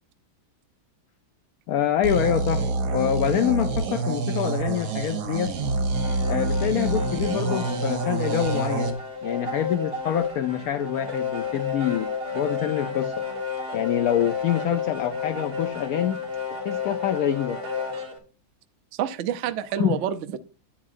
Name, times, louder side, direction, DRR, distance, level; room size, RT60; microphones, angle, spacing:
voice 1, 1.7-5.5 6.3-9.0 9.2-13.1 13.7-16.2 16.6-17.6 19.8-20.0, left 10 dB, 80° left, 0.8 m, -26 dB
sound 1, 2.0-8.9, right 3 dB, 55° right, 1.2 m, -27 dB
sound 2, 5.6-18.2, left 5 dB, 35° right, 1.5 m, -31 dB
voice 2, 18.9-20.4, right 9 dB, 80° right, 0.6 m, -28 dB
10.0 x 8.7 x 2.5 m
omnidirectional pair, 2.1 m